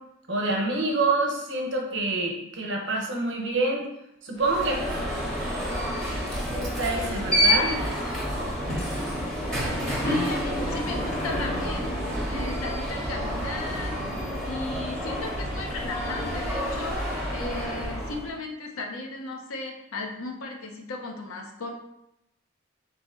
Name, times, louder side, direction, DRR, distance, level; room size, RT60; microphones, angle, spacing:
voice 1, 0.3-3.9 4.2-4.8 6.5-7.8, right 2 dB, 60° right, 1 dB, 0.9 m, -27 dB
Alarm, 4.4-18.3, equal, ahead, 1.0 m, -29 dB
voice 2, 9.5-14.0 14.4-21.7, left 3 dB, 90° left, 2 dB, 0.7 m, -36 dB
4.1 x 3.0 x 3.7 m, 0.83 s
head